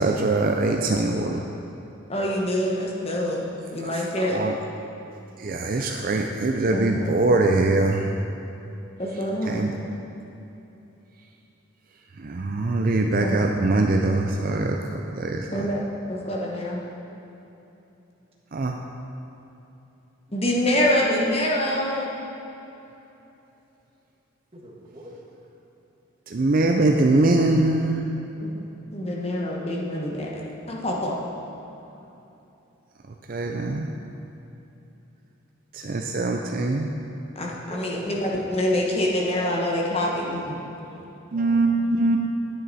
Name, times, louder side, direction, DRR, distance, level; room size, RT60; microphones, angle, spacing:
voice 1, 0.0-1.4 3.8-3.9 4.1-4.6 5.4-8.1 9.5-9.7 12.2-15.7 18.5-18.8 26.3-28.0 33.3-33.9 35.7-36.9 41.3-42.2, right 2 dB, 40° right, 3 dB, 0.4 m, -22 dB
voice 2, 2.1-3.4 3.7-4.4 6.7-7.2 9.0-9.7 13.2-13.4 15.5-16.8 20.3-22.2 28.4-28.6 28.9-31.2 37.3-40.6, left 1 dB, 30° left, -2 dB, 1.1 m, -26 dB
voice 3, 24.5-25.2 37.7-38.2 40.1-40.2 40.6-41.0 41.3-42.1, right 2 dB, 25° right, -4 dB, 1.6 m, -43 dB
10.5 x 9.3 x 4.1 m, 3.0 s
head